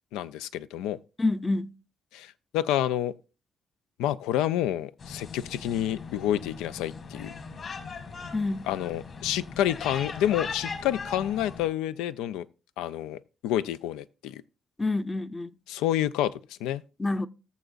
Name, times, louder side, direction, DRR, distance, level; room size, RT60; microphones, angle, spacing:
voice 1, 0.1-1.0 2.1-3.1 4.0-7.3 8.7-12.5 12.8-14.4 15.7-16.8, left 12 dB, 85° left, 0.4 m, -29 dB
voice 2, 1.2-1.7 8.3-8.7 14.8-15.5 17.0-17.3, left 2 dB, 20° left, 0.6 m, -27 dB
sound 1, 5.0-11.7, left 5 dB, 55° left, 2.1 m, -39 dB
19.0 x 7.0 x 2.5 m
supercardioid pair, 55°, 0 cm